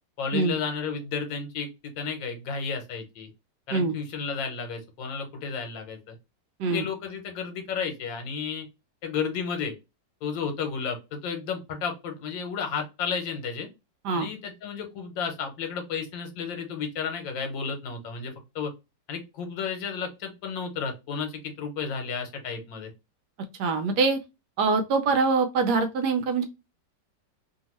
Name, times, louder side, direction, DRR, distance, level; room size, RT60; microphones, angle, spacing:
voice 1, 0.2-1.7 2.0-3.3 3.7-6.1 6.7-8.7 9.0-9.7 10.2-13.7 14.1-18.7 19.1-22.9, left 6 dB, 80° left, 5 dB, 1.5 m, -32 dB
voice 2, 23.6-24.2 24.6-26.4, right 4 dB, 70° right, 6 dB, 1.1 m, -24 dB
2.9 x 2.7 x 2.9 m, 0.25 s
omnidirectional pair, 2.0 m